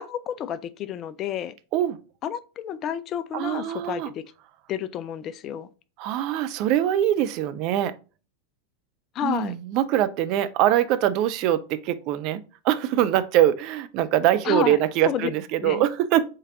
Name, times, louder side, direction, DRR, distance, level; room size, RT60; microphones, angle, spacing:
voice 1, 0.0-1.5 2.2-4.2 4.7-5.7 9.1-9.5 14.4-14.8 15.1-15.3 15.6-15.8, left 9 dB, 30° left, 0.4 m, -30 dB
voice 2, 3.3-4.1 6.0-7.9 9.2-16.2, right 12 dB, 40° right, 0.4 m, -23 dB
5.0 x 3.9 x 2.6 m
figure-of-eight pair, 90°, 0 cm